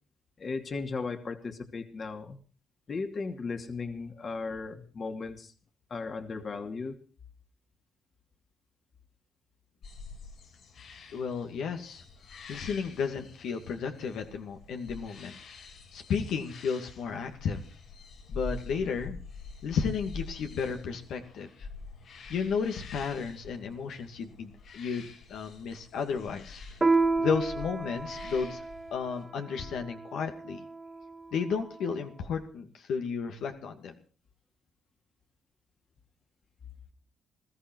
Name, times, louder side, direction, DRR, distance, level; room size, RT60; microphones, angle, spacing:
voice 1, 0.4-2.4 2.9-5.5 5.9-7.0, left 4 dB, 45° left, 6 dB, 2.6 m, -36 dB
sound 1, 9.8-29.2, left 3 dB, 60° left, 8.0 m, -46 dB
voice 2, 11.1-12.0 12.5-15.3 15.9-17.6 18.3-19.2 19.6-21.7 22.3-26.6 27.2-28.6 28.9-30.6 31.3-33.9, left 6 dB, 75° left, 4 dB, 2.4 m, -33 dB
Piano, 26.8-31.8, right 3 dB, 25° right, 1.5 m, -31 dB
21.0 x 14.5 x 4.6 m, 0.38 s
cardioid pair, 90°, 0 cm